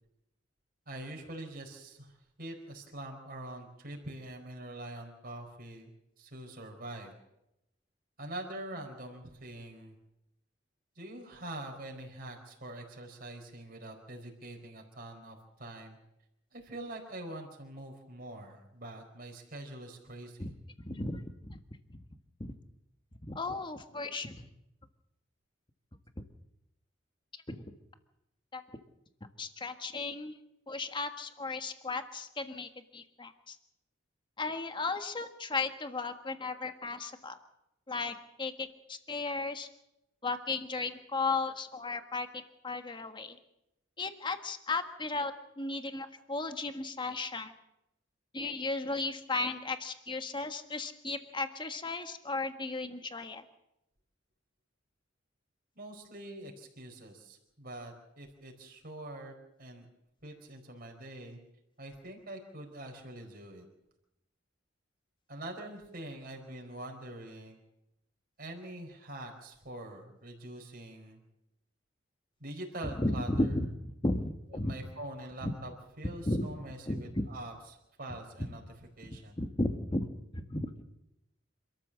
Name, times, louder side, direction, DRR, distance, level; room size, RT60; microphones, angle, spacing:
voice 1, 0.9-5.9 6.2-7.1 8.2-10.0 11.0-16.0 16.5-20.5 55.7-59.3 59.6-59.9 60.2-61.4 61.8-63.6 65.3-67.6 68.4-71.2 72.4-73.5 74.5-78.6 79.0-79.4, right 1 dB, 50° right, 2 dB, 4.5 m, -44 dB
voice 2, 20.9-21.6 22.4-22.5 23.3-24.5 27.5-27.6 28.5-28.6 29.4-30.3 30.7-33.6 34.4-37.4 37.9-39.7 40.2-42.3 42.6-43.4 44.0-47.5 48.3-53.4 72.9-73.7 74.0-74.7 75.4-75.5 76.3-76.4 76.9-77.3 79.4-80.1 80.3-80.8, left 3 dB, 25° left, 8 dB, 1.5 m, -35 dB
27.0 x 13.5 x 7.5 m, 0.87 s
head